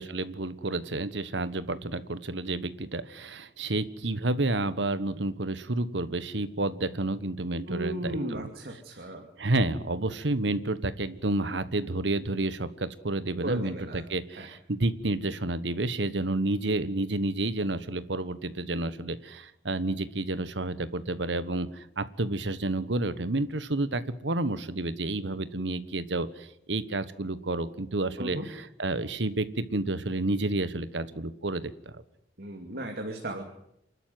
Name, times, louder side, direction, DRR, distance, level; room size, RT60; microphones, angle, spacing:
voice 1, 0.0-8.5 9.4-31.7, right 2 dB, 85° right, 14 dB, 1.4 m, -30 dB
voice 2, 7.7-9.3 13.4-14.0 14.4-14.5 28.2-28.4 32.4-33.4, right 1 dB, 60° right, 3 dB, 2.7 m, -35 dB
28.0 x 12.5 x 9.4 m, 0.78 s
head